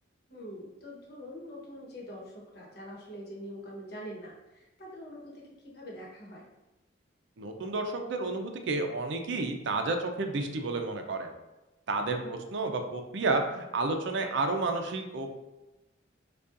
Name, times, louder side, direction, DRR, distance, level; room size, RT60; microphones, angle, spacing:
voice 1, 0.3-6.5 12.1-12.4, equal, 60° left, -3 dB, 1.0 m, -44 dB
voice 2, 7.4-11.3 11.9-15.3, right 3 dB, 65° right, 5 dB, 0.5 m, -31 dB
5.2 x 2.3 x 2.5 m, 1.0 s
head